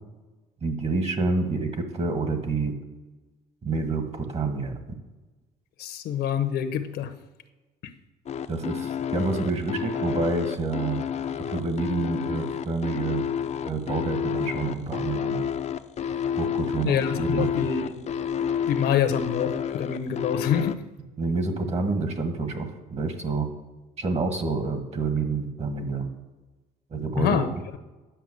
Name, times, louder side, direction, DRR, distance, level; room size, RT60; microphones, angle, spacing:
voice 1, 0.6-2.7 3.6-5.0 8.5-11.0 11.5-13.2 13.6-15.4 16.4-17.7 21.2-23.5 24.0-26.1 26.9-27.6, right 3 dB, 40° right, 6 dB, 1.7 m, -28 dB
voice 2, 5.8-7.1 16.8-18.1 18.7-20.7 27.2-27.5, left 8 dB, 75° left, 9 dB, 1.0 m, -26 dB
sound 1, 8.3-20.8, left 8 dB, 40° left, 0.6 m, -29 dB
10.0 x 5.9 x 8.1 m, 1.2 s
cardioid pair, 110°, 17 cm